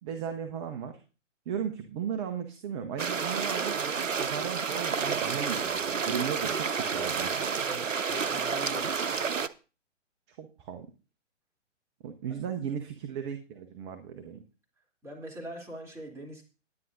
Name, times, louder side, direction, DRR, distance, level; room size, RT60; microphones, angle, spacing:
voice 1, 0.0-1.0 1.5-7.6 10.4-10.9 12.0-14.4, right 7 dB, 25° right, 6 dB, 0.9 m, -36 dB
sound 1, 3.0-9.5, right 6 dB, 85° right, 0.7 m, -30 dB
voice 2, 7.6-9.1 15.0-16.4, equal, 5° right, -3 dB, 3.3 m, -42 dB
20.0 x 9.3 x 2.7 m, 0.33 s
figure-of-eight pair, 130°, 37 cm